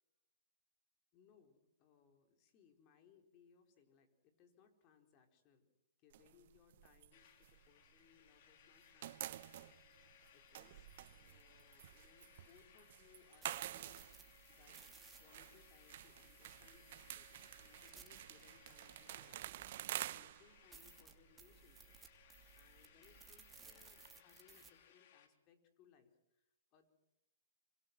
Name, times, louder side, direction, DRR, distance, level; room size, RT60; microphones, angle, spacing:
voice 1, 1.1-5.7 6.0-14.8 15.2-26.9, left 7 dB, 35° left, 5 dB, 4.8 m, -70 dB
sound 1, 6.1-8.4 8.6-24.1, right 13 dB, 55° right, 0.9 m, -50 dB
sound 2, 7.1-25.3, left 9 dB, 55° left, 3.7 m, -66 dB
sound 3, 13.2-19.9 20.3-20.4 20.7-24.7, right 6 dB, 15° right, 2.8 m, -62 dB
27.0 x 26.0 x 6.3 m, 0.85 s
hypercardioid pair, 125°, 0 cm